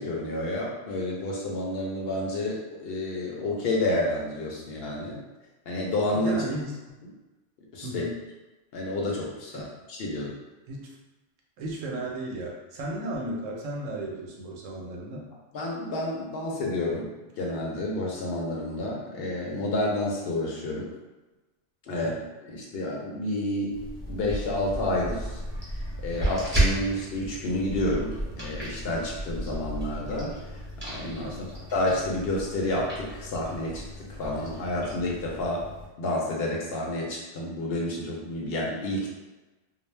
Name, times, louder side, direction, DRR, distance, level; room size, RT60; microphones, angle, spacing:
voice 1, 0.0-5.2 5.7-6.4 7.7-8.0 8.7-10.3 15.5-17.1 17.4-20.9 21.9-22.1 22.4-23.8 24.1-25.4 26.0-30.3 30.8-31.4 31.7-35.6 36.0-39.1, left 1 dB, 60° left, -2 dB, 0.7 m, -30 dB
voice 2, 6.1-6.7 7.8-8.2 9.5-9.7 10.7-10.9 11.6-15.3 21.9-22.2 31.2-31.5, right 1 dB, 90° right, -1 dB, 1.0 m, -35 dB
sound 1, 23.7-35.9, right 1 dB, 10° right, 0.8 m, -33 dB
2.4 x 2.0 x 3.1 m, 1.1 s
omnidirectional pair, 1.3 m